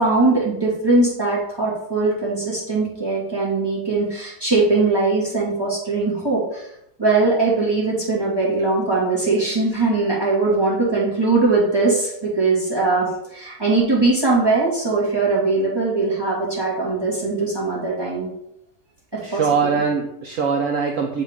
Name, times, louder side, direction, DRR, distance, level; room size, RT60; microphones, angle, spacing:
voice 1, 0.0-6.6 7.0-18.3 19.1-19.4, right 3 dB, 15° right, -7 dB, 1.8 m, -20 dB
voice 2, 19.2-21.2, right 5 dB, 65° right, 2 dB, 0.8 m, -22 dB
7.3 x 3.9 x 3.5 m, 0.78 s
omnidirectional pair, 1.8 m